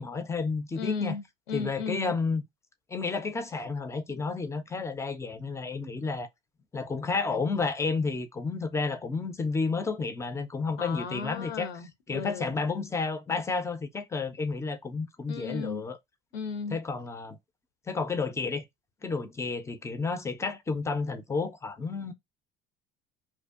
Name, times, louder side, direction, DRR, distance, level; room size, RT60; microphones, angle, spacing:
voice 1, 0.0-1.1 1.5-2.4 2.9-6.3 6.7-11.7 12.1-16.0 16.7-17.4 17.9-18.6 19.0-22.1, left 4 dB, 10° left, 0.3 m, -31 dB
voice 2, 0.7-2.2 10.8-12.5 15.3-15.8 16.3-16.8, left 5 dB, 80° left, 0.5 m, -35 dB
2.6 x 2.1 x 2.3 m
figure-of-eight pair, 65°, 31 cm